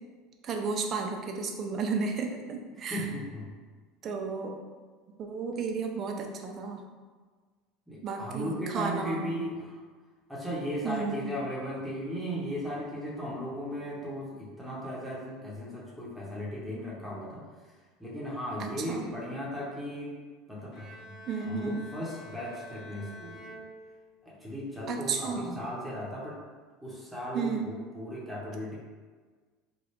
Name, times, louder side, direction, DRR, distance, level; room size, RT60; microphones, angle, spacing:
voice 1, 0.4-3.1 4.0-4.5 5.2-6.8 8.0-9.2 10.8-11.3 18.6-19.1 21.3-21.9 24.9-25.6 27.3-27.7, right 5 dB, 45° right, 3 dB, 0.5 m, -33 dB
voice 2, 2.8-3.5 7.9-9.8 10.3-20.2 20.5-21.2 21.4-23.6 24.2-26.4 26.8-28.7, equal, 5° right, -6 dB, 0.9 m, -36 dB
Bowed string instrument, 20.7-24.5, equal, 55° left, 0.9 m, -48 dB
2.9 x 2.2 x 3.2 m, 1.4 s
hypercardioid pair, 75°, 0 cm